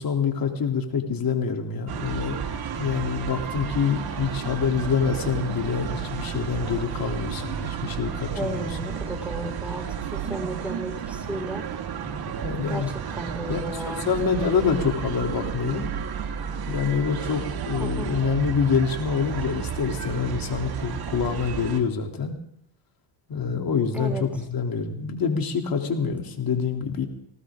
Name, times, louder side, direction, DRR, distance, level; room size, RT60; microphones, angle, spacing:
voice 1, 0.0-2.4 2.7-8.7 12.4-12.9 13.5-15.9 16.7-22.4 23.3-27.1, left 6 dB, 45° left, 3 dB, 3.4 m, -26 dB
sound 1, 1.9-21.8, right 8 dB, 50° right, 2.3 m, -32 dB
voice 2, 8.3-11.7 12.7-14.1 17.8-18.1 23.9-24.3, right 1 dB, 5° right, 2 dB, 5.5 m, -34 dB
19.5 x 18.5 x 3.8 m, 0.66 s
supercardioid pair, 85°, 47 cm